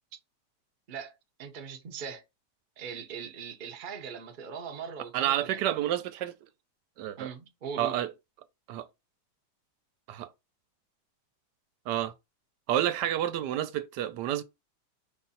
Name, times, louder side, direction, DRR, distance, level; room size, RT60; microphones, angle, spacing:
voice 1, 0.9-2.2 2.8-5.6 7.2-8.0, right 6 dB, 55° right, 0.5 m, -40 dB
voice 2, 5.1-6.3 7.0-7.3 7.8-8.1 8.7-8.9 10.1-10.3 11.9-12.1 12.7-14.4, right 12 dB, 80° right, 1.2 m, -29 dB
5.3 x 2.5 x 4.0 m
omnidirectional pair, 1.9 m